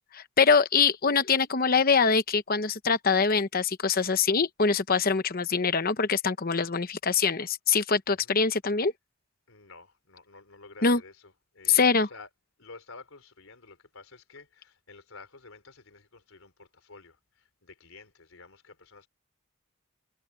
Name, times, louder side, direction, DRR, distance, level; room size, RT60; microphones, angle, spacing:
voice 1, 0.1-8.9 10.8-11.0 11.7-12.1, left 5 dB, 45° left, 0.9 m, -24 dB
voice 2, 9.5-12.3 12.6-19.1, left 3 dB, 80° left, 3.6 m, -51 dB
head